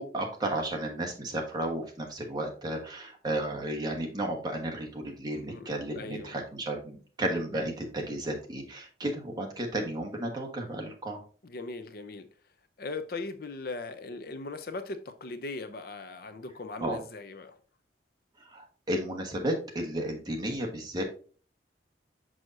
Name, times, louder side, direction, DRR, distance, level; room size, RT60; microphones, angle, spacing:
voice 1, 0.0-11.2 16.8-17.0 18.4-21.0, right 1 dB, 20° right, 1.3 m, -33 dB
voice 2, 5.3-5.7 5.9-6.3 11.4-12.3 12.8-17.5, left 3 dB, 50° left, 0.6 m, -39 dB
6.2 x 6.1 x 2.6 m
head